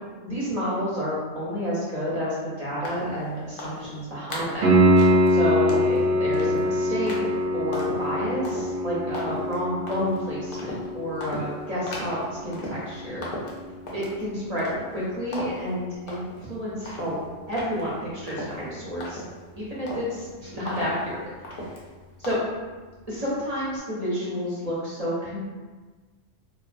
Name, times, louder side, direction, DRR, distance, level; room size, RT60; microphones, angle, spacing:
voice 1, 0.2-4.6 5.3-7.2 7.5-13.3 13.9-16.2 16.5-17.2 17.5-19.2 19.6-21.2 21.5-21.7 22.2-22.4 23.1-25.4, equal, 45° right, -8 dB, 0.6 m, -30 dB
sound 1, 2.8-3.2 3.6-3.9 4.3-4.6 5.0-5.3 5.7-6.0 6.3-6.6 7.1-7.3 7.7-8.0 8.4-8.7 9.1-9.5 9.9-10.2 10.5-10.9 11.2-11.5 11.9-12.2 12.5-12.9 13.2-14.2 14.6-15.0 15.3-15.7 16.1-16.5 16.8-19.5 19.9-20.2 20.7-21.1 21.4-21.9 22.2-22.3, left 1 dB, 60° left, 0.6 m, -36 dB
Piano, 4.6-15.3 18.6-18.7, equal, 75° right, 0.9 m, -25 dB
2.4 x 2.4 x 2.4 m, 1.3 s
omnidirectional pair, 1.2 m